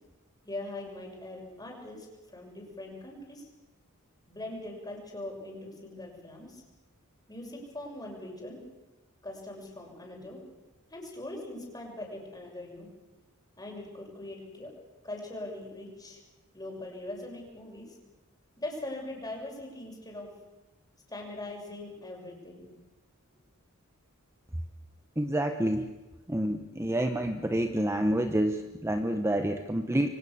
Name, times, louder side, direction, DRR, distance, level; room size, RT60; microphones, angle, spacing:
voice 1, 0.4-3.5 4.3-6.6 7.3-8.6 9.2-10.4 10.9-12.9 13.6-14.7 15.0-16.2 16.5-18.0 18.6-20.3 21.1-22.7, left 1 dB, 20° left, 0 dB, 6.6 m, -41 dB
voice 2, 25.2-25.9 26.3-30.1, right 1 dB, 15° right, 6 dB, 1.0 m, -28 dB
27.5 x 24.0 x 7.0 m, 1.1 s
head